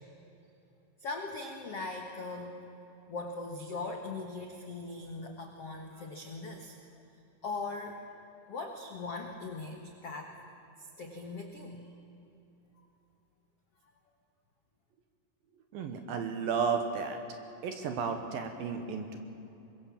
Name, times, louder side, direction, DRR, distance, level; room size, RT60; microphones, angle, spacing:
voice 1, 1.0-2.5 3.1-6.8 7.4-8.0 8.5-10.4 10.8-11.9, left 3 dB, 75° left, 3 dB, 1.4 m, -40 dB
voice 2, 15.7-17.2 17.6-19.2, right 6 dB, 65° right, 6 dB, 2.5 m, -33 dB
24.5 x 22.5 x 7.4 m, 2.9 s
omnidirectional pair, 5.3 m